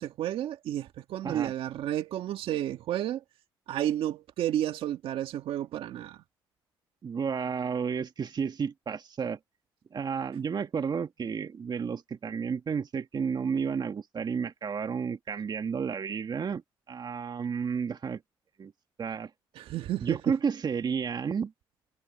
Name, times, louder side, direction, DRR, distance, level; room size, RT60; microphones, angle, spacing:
voice 1, 0.0-3.2 3.7-6.2 19.6-20.3, right 12 dB, 80° right, 1.9 m, -31 dB
voice 2, 7.0-9.4 9.9-16.6 16.9-18.2 18.6-18.7 19.0-19.3 20.0-21.5, right 6 dB, 50° right, 1.9 m, -31 dB
supercardioid pair, 60°, 9 cm